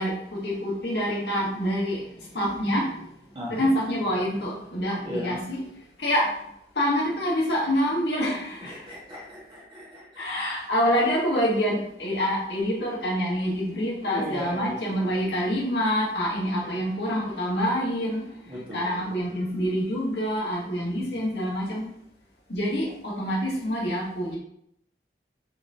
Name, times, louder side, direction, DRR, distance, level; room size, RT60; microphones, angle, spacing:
voice 1, 0.0-2.0 2.3-3.1 3.5-5.6 6.0-6.3 6.7-8.8 10.2-18.3 18.7-21.9 22.5-24.4, equal, 70° left, -4 dB, 1.4 m, -26 dB
voice 2, 3.3-3.7 5.0-5.4 8.6-10.3 14.1-15.2 16.6-16.8 18.4-19.1 21.0-21.2, left 1 dB, 30° right, -6 dB, 1.5 m, -38 dB
4.6 x 3.6 x 2.7 m, 0.73 s
head